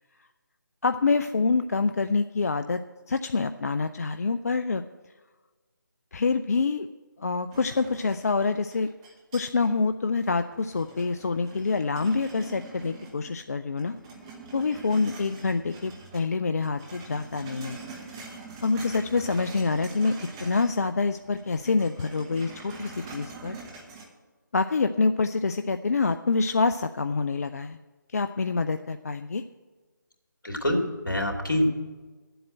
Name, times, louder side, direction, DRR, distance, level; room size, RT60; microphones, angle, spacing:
voice 1, 0.8-2.8 3.1-4.8 6.1-6.9 7.2-8.9 9.3-14.0 14.5-17.8 18.6-20.1 20.4-23.6 24.5-27.8 28.1-29.4, left 4 dB, 50° left, 9 dB, 0.4 m, -26 dB
sound 1, 7.5-9.8 10.2-13.4 13.7-16.2 16.5-20.8 21.1-24.0, right 4 dB, 15° right, 1.1 m, -44 dB
voice 2, 30.4-31.7, left 1 dB, 75° left, 1 dB, 2.7 m, -25 dB
9.9 x 7.8 x 7.5 m, 1.3 s
figure-of-eight pair, 155°, 11 cm